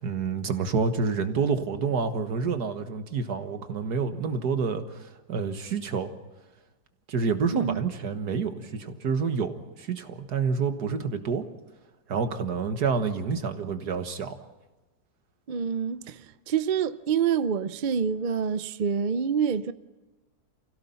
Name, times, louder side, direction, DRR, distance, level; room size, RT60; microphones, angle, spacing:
voice 1, 0.0-6.1 7.1-11.5 12.1-14.5, right 5 dB, 75° right, 2.0 m, -28 dB
voice 2, 15.5-19.7, right 7 dB, 55° right, 0.5 m, -27 dB
29.0 x 16.5 x 5.7 m
omnidirectional pair, 1.7 m